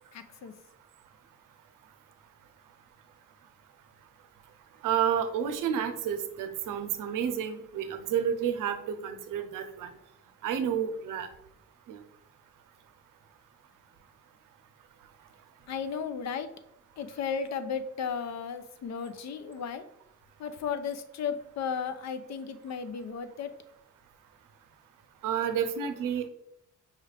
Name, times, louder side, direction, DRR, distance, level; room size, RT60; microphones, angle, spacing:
voice 1, 0.1-0.5 15.7-16.5 17.0-19.8 20.4-23.5, left 6 dB, 60° left, 10 dB, 0.5 m, -34 dB
voice 2, 4.8-8.8 9.0-9.9 10.4-11.3 11.9-12.0 25.2-26.3, right 8 dB, 90° right, 8 dB, 0.6 m, -30 dB
5.5 x 2.4 x 3.3 m, 0.78 s
cardioid pair, 125°, 31 cm